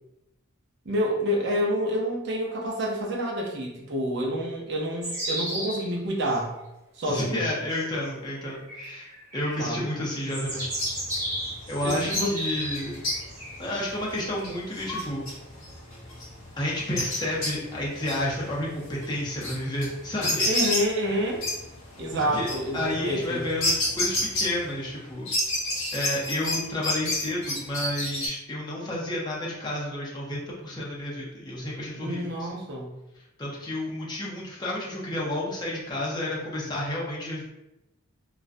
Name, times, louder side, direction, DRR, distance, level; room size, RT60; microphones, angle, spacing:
voice 1, 0.9-6.5 7.0-7.5 9.6-9.9 11.8-12.3 20.5-21.4 22.0-23.4 32.0-32.9, equal, 55° right, -2 dB, 0.6 m, -28 dB
sound 1, 5.0-5.9 6.2-6.4 7.7-8.1 8.4-9.7 10.2-13.8, equal, 15° right, 1.1 m, -34 dB
voice 2, 7.0-10.7 11.7-13.0 13.6-15.3 16.6-20.5 22.1-22.5 22.7-25.3 25.9-32.5 33.4-37.4, left 1 dB, 20° left, -5 dB, 0.5 m, -31 dB
sound 2, 10.5-24.9 25.3-28.3, left 1 dB, 85° left, 0.8 m, -31 dB
2.4 x 2.1 x 2.5 m, 0.91 s
head